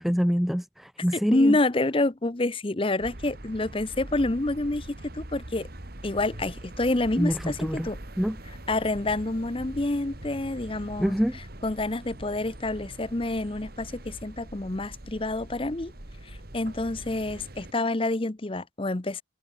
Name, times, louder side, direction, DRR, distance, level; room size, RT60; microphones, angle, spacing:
voice 1, 0.0-1.6 7.2-7.9 8.2-8.4 11.0-11.4, equal, ahead, 0.4 m, -25 dB
voice 2, 1.1-5.7 6.0-8.0 8.7-11.1 11.6-15.9 16.2-19.2, left 2 dB, 25° left, 0.8 m, -28 dB
sound 1, 3.0-17.7, right 1 dB, 50° right, 2.3 m, -43 dB
head